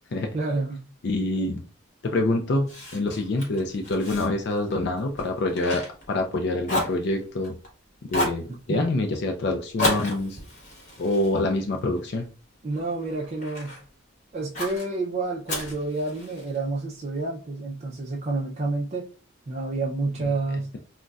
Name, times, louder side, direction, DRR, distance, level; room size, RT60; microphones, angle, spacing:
voice 1, 0.3-0.8 8.7-8.9 12.6-13.8 14.3-19.1 19.5-20.7, right 3 dB, 35° right, -4 dB, 0.4 m, -29 dB
voice 2, 1.0-1.6 2.0-7.6 8.1-10.4 11.0-12.3, left 2 dB, 55° left, 3 dB, 0.4 m, -26 dB
Fire, 2.7-6.4 6.6-7.7 8.1-8.5 9.8-12.2 12.7-13.8 14.5-14.9 15.5-16.6, left 1 dB, 40° left, 1.0 m, -32 dB
3.8 x 2.1 x 2.3 m, 0.36 s
head